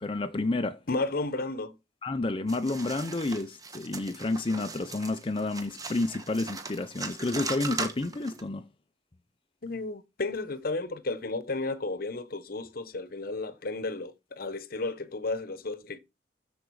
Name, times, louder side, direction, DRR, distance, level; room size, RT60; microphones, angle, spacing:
voice 1, 0.0-0.8 2.0-8.6, left 2 dB, 30° left, 0.6 m, -30 dB
voice 2, 0.9-1.7 9.6-16.0, left 3 dB, 55° left, 1.0 m, -33 dB
sound 1, 2.5-8.4, right 3 dB, 20° right, 1.4 m, -39 dB
13.0 x 5.1 x 4.7 m
head